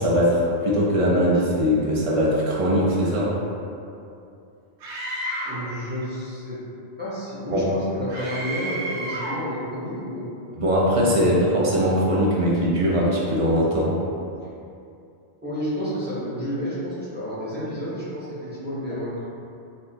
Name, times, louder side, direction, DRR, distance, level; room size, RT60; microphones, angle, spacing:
voice 1, 0.0-3.3 7.5-7.7 10.6-13.9, equal, 50° right, -5 dB, 0.4 m, -21 dB
Screaming, 4.8-5.7 8.1-9.5, right 1 dB, 85° right, 0.9 m, -31 dB
voice 2, 5.4-6.6 7.0-10.3 15.4-19.3, equal, 10° right, -10 dB, 0.6 m, -30 dB
4.2 x 2.0 x 2.7 m, 2.6 s
omnidirectional pair, 1.2 m